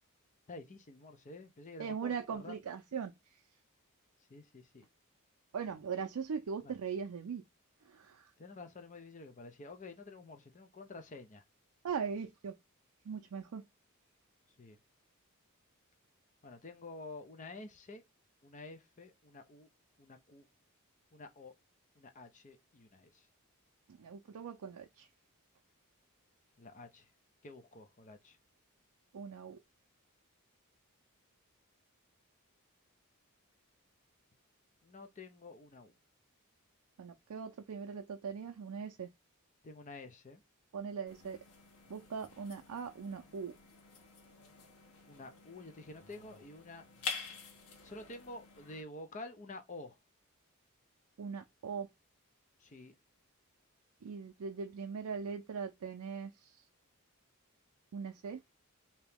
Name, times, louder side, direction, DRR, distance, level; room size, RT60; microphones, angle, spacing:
voice 1, 0.5-2.6 4.3-4.9 6.6-6.7 8.4-11.4 14.6-14.8 16.4-18.0 18.4-19.7 20.0-20.5 21.1-21.5 22.0-23.3 26.6-27.1 27.4-28.4 34.8-35.9 39.6-40.4 45.1-46.8 47.8-50.0 52.6-52.9, left 2 dB, 35° left, 0.5 m, -50 dB
voice 2, 1.8-3.4 5.5-7.4 7.8-8.3 11.8-12.5 13.1-13.6 23.9-25.1 29.1-29.6 37.0-39.1 40.7-41.4 41.9-43.5 51.2-51.9 54.0-56.6 57.9-58.4, right 6 dB, 80° right, 0.4 m, -40 dB
sound 1, 41.1-48.8, left 5 dB, 85° left, 0.9 m, -48 dB
3.0 x 2.8 x 3.4 m
head